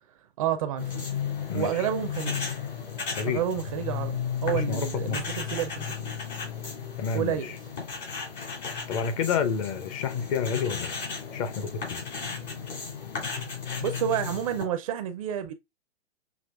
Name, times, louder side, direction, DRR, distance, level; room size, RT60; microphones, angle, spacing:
voice 1, 0.4-1.1 1.5-2.5 3.3-6.1 7.1-7.5 13.8-15.5, right 10 dB, 30° right, 0.4 m, -30 dB
sound 1, 0.8-14.6, left 6 dB, 70° left, 3.2 m, -34 dB
voice 2, 1.5-1.9 3.1-3.4 4.5-5.4 7.0-7.6 8.9-10.9 11.3-12.0, left 6 dB, 30° left, 0.5 m, -30 dB
6.1 x 3.0 x 2.3 m
figure-of-eight pair, 115°, 34 cm